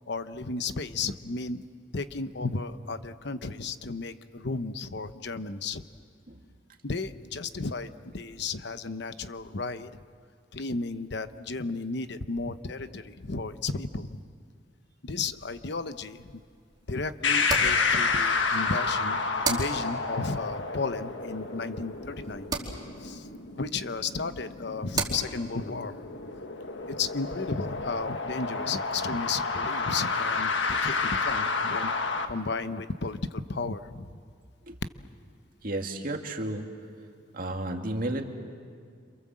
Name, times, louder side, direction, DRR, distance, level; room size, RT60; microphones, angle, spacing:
voice 1, 0.1-1.6 1.9-5.8 6.8-9.9 10.5-14.2 15.0-16.3 16.9-19.2 19.5-22.5 23.0-23.3 23.6-25.9 26.9-30.5 30.8-34.2, left 4 dB, 65° left, 11 dB, 1.0 m, -33 dB
sound 1, 15.4-28.2, right 4 dB, 25° right, 3.3 m, -40 dB
sound 2, 17.2-32.3, left 4 dB, 85° left, 1.6 m, -30 dB
voice 2, 35.6-36.7 37.3-38.2, right 1 dB, 50° right, 3 dB, 2.2 m, -32 dB
28.0 x 27.0 x 7.6 m, 2.2 s
head